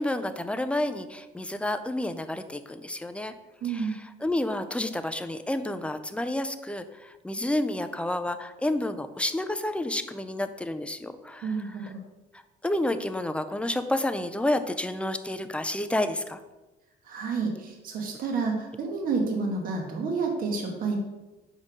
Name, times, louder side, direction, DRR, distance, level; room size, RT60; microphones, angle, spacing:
voice 1, 0.0-3.3 3.6-11.5 12.6-16.4, left 1 dB, 5° left, 9 dB, 0.4 m, -30 dB
voice 2, 3.6-3.9 11.4-12.0 17.1-21.0, right 4 dB, 55° right, 1 dB, 1.3 m, -29 dB
5.0 x 4.2 x 6.0 m, 1.1 s
cardioid pair, 110°, 17 cm